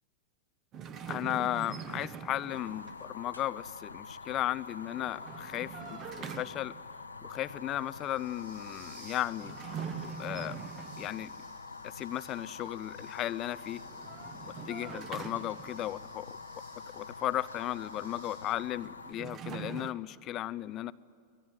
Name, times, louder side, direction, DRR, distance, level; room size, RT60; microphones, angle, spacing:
sound 1, 0.7-3.0 4.9-6.9 9.3-11.4 13.8-15.9 18.8-19.9, right 7 dB, 30° right, 1.3 m, -43 dB
voice 1, 1.1-6.7 7.2-9.6 10.2-10.6 11.0-11.3 11.8-13.8 14.7-16.4 16.9-20.9, left 13 dB, 35° left, 17 dB, 0.6 m, -35 dB
Fire, 2.5-19.1, left 4 dB, 80° left, 1.0 m, -46 dB
sound 2, 5.5-18.5, right 3 dB, 70° right, 5.0 m, -59 dB
25.0 x 18.0 x 9.4 m, 2.3 s
figure-of-eight pair, 90°, 0 cm